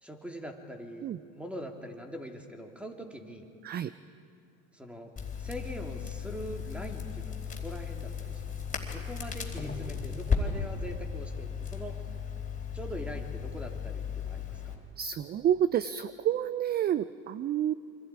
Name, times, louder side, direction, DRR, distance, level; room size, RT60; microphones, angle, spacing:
voice 1, 0.0-1.1 1.3-3.4 4.7-5.1 5.4-12.0 12.7-14.8, equal, 5° right, 2 dB, 2.8 m, -42 dB
Crackle, 5.2-14.7, left 6 dB, 20° left, 4.1 m, -35 dB
voice 2, 15.0-17.7, right 10 dB, 25° right, 15 dB, 0.4 m, -29 dB
28.5 x 25.5 x 4.9 m, 2.5 s
hypercardioid pair, 100°, 41 cm